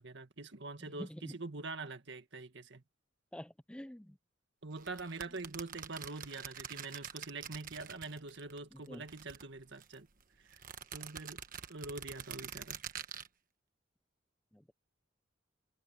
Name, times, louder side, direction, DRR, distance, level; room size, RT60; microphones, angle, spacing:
voice 1, 0.0-2.8 4.6-10.1 10.5-10.6 10.9-11.4 11.7-12.8, right 3 dB, 65° right, 1.9 m, -44 dB
voice 2, 0.8-1.3 3.3-4.2 8.7-9.0 14.5-14.7, equal, 5° left, 0.5 m, -47 dB
sound 1, 4.8-8.6 8.9-10.0 10.5-13.3, right 8 dB, 45° right, 1.3 m, -46 dB
head